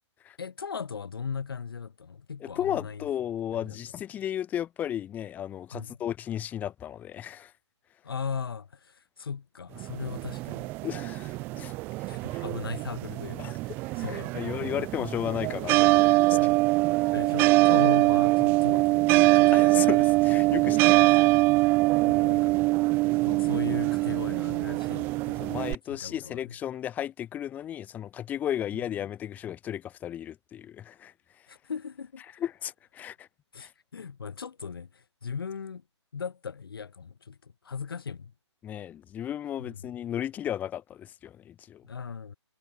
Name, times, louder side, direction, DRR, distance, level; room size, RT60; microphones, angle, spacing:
voice 1, 0.4-3.0 3.5-3.8 5.7-6.0 8.0-10.7 11.5-11.7 12.1-14.7 16.3-16.6 17.1-19.8 22.1-22.6 23.2-25.4 25.9-26.4 28.7-28.8 31.5-32.4 33.5-35.8 36.1-38.3 39.6-39.8 41.8-42.4, left 6 dB, 50° left, 6.2 m, -38 dB
voice 2, 2.4-7.5 10.8-12.4 13.4-13.6 13.8-16.4 19.5-21.3 25.4-31.1 32.4-33.3 33.6-33.7 38.6-41.8, left 10 dB, 10° left, 3.5 m, -34 dB
sound 1, 9.8-25.7, right 22 dB, 10° right, 0.7 m, -23 dB
figure-of-eight pair, 140°, 15 cm